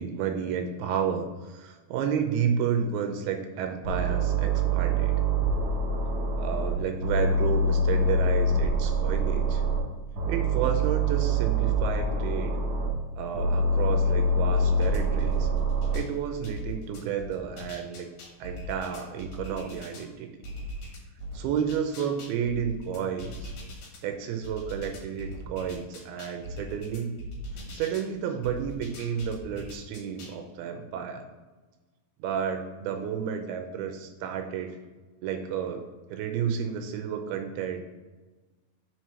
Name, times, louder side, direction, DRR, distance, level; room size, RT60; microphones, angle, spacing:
voice 1, 0.0-5.2 6.4-9.6 10.3-12.6 13.2-15.5 15.9-18.1 18.4-20.4 21.3-23.5 24.0-27.2 27.7-31.3 32.2-34.7 35.2-37.8, right 7 dB, 90° right, 5 dB, 2.6 m, -31 dB
sound 1, 3.8-6.7 7.0-9.8 10.1-12.9 13.3-16.0, right 2 dB, 60° right, 2.9 m, -25 dB
sound 2, 14.4-16.1 16.4-20.1 20.4-24.0 24.4-28.1 28.4-30.4, equal, 70° left, 3.4 m, -40 dB
6.4 x 4.7 x 5.5 m, 1.3 s
omnidirectional pair, 4.4 m